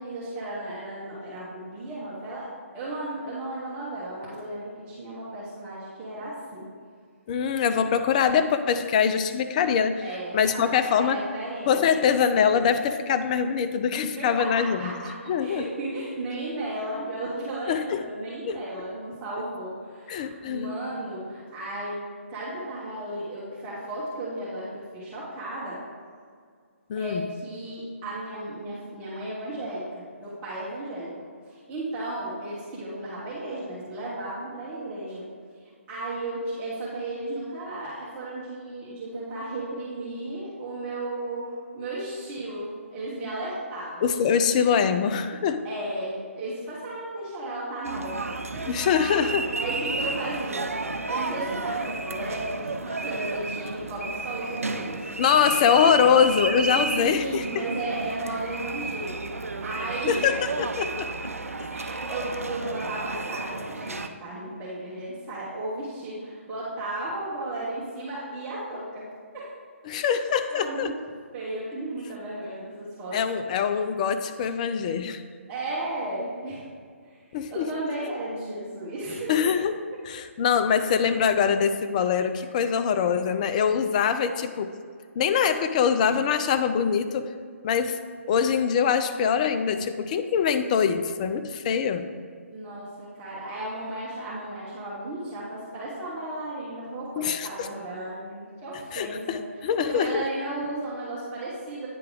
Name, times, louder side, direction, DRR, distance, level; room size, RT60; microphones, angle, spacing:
voice 1, 0.0-2.5 2.7-6.7 10.0-10.7 11.0-12.2 14.2-15.1 15.4-25.8 27.0-31.1 31.4-35.2 35.9-44.1 45.6-49.1 49.6-50.8 51.1-55.1 56.0-56.1 57.0-60.2 61.7-69.1 69.3-69.5 70.5-70.9 71.3-73.2 75.5-76.6 77.0-79.3 92.5-99.4 99.9-101.9, right 1 dB, 20° right, -9 dB, 1.4 m, -34 dB
voice 2, 7.3-10.0 10.3-11.2 11.7-14.9 15.3-15.7 17.7-18.0 18.5-18.6 20.1-20.7 26.9-27.3 44.0-45.6 48.7-49.5 55.2-57.5 60.1-61.1 69.9-70.9 73.1-75.2 77.3-77.7 79.3-79.7 80.0-84.7 85.2-87.3 87.6-88.0 88.3-92.1 97.2-97.7 98.9-100.2, left 7 dB, 30° left, 9 dB, 0.4 m, -23 dB
sound 1, 47.8-64.1, right 3 dB, 85° right, 0.5 m, -32 dB
9.2 x 3.4 x 4.9 m, 2.1 s
figure-of-eight pair, 140°, 8 cm